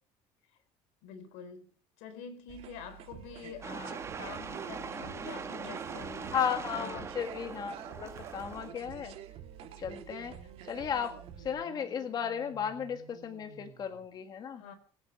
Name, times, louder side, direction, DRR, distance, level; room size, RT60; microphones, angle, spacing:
voice 1, 1.0-1.7 2.0-6.4 6.7-7.1 14.6-14.7, left 6 dB, 85° left, 3.8 m, -46 dB
sound 1, 2.5-11.5, right 10 dB, 60° right, 2.9 m, -48 dB
sound 2, 3.6-8.7, right 5 dB, 25° right, 1.4 m, -41 dB
voice 2, 6.3-9.2 9.8-10.4 10.7-14.6, left 7 dB, 35° left, 1.8 m, -35 dB
sound 3, 6.7-14.1, right 8 dB, 80° right, 3.1 m, -56 dB
23.0 x 8.8 x 6.5 m
cardioid pair, 145°, 12 cm